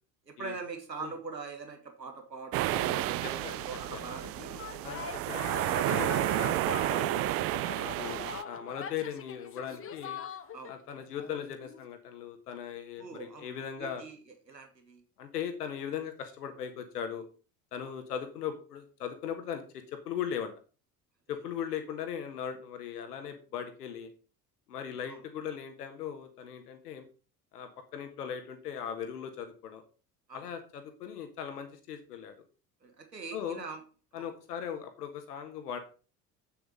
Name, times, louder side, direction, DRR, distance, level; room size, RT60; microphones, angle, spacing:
voice 1, 0.3-4.7 10.5-10.7 13.0-14.2 14.5-15.0 17.8-17.9 25.1-25.2 30.3-30.5 32.8-33.8 34.1-34.3, right 4 dB, 85° right, 5 dB, 1.5 m, -43 dB
sound 1, 2.5-8.4, right 17 dB, 30° right, 0.4 m, -31 dB
voice 2, 2.6-3.6 3.9-4.0 4.8-7.3 7.8-10.2 10.7-14.0 15.2-17.2 17.7-20.5 21.3-24.1 24.7-27.1 27.5-29.8 30.3-32.3 33.3-33.6 34.1-35.8, left 8 dB, 70° left, 8 dB, 1.5 m, -39 dB
sound 2, 3.2-10.8 11.2-11.8, left 7 dB, 25° left, 1.2 m, -42 dB
8.6 x 7.2 x 5.2 m, 0.36 s
figure-of-eight pair, 60°, 48 cm